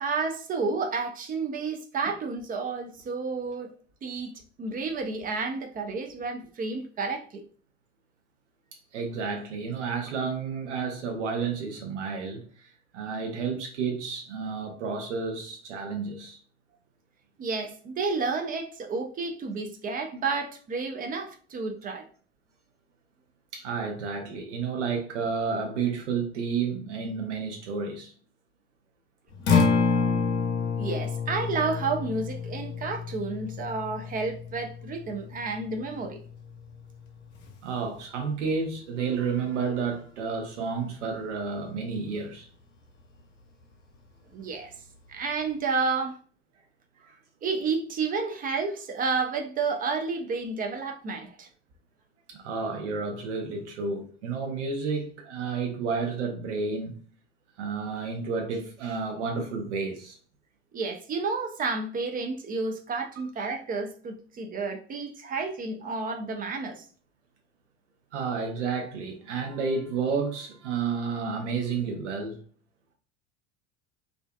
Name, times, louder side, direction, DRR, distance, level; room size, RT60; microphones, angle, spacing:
voice 1, 0.0-3.7 4.0-4.3 4.6-7.4 17.4-22.1 30.8-36.2 44.3-44.7 45.1-46.2 47.4-51.5 60.7-66.8, right 4 dB, 25° right, 0.4 m, -31 dB
voice 2, 8.9-12.4 12.9-16.4 23.5-28.1 37.6-42.5 52.3-56.9 57.6-60.2 68.1-72.4, right 5 dB, 75° right, 0.7 m, -31 dB
Acoustic guitar, 29.3-37.5, left 5 dB, 75° left, 0.7 m, -29 dB
2.4 x 2.3 x 2.2 m
figure-of-eight pair, 70°, 36 cm